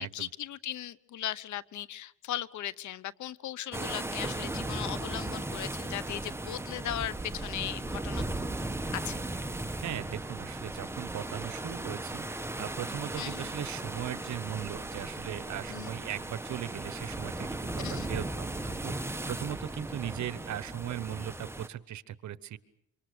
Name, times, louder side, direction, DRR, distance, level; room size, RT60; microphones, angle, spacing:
voice 1, 0.0-8.5 8.9-9.2 13.2-13.5 15.7-15.9 17.8-18.1, left 12 dB, 70° left, 19 dB, 0.9 m, -38 dB
sound 1, 3.7-21.7, right 2 dB, 10° right, 1.2 m, -37 dB
voice 2, 9.8-12.2 12.6-19.0 19.3-22.6, right 11 dB, 70° right, 16 dB, 1.1 m, -38 dB
26.5 x 24.5 x 6.8 m, 0.81 s
cardioid pair, 90°, 30 cm